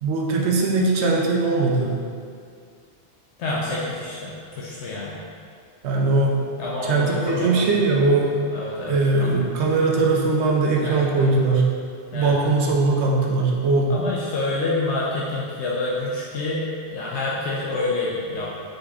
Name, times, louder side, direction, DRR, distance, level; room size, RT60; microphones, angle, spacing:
voice 1, 0.0-2.0 5.8-6.3 6.8-8.3 8.9-11.7 12.1-13.9, right 3 dB, 75° right, -2 dB, 0.9 m, -20 dB
voice 2, 3.4-5.2 6.6-7.6 8.0-8.1 8.5-9.5 10.8-11.3 12.1-12.3 13.9-18.5, left 2 dB, 75° left, -5 dB, 0.9 m, -28 dB
3.9 x 3.4 x 3.6 m, 2.2 s
omnidirectional pair, 1.2 m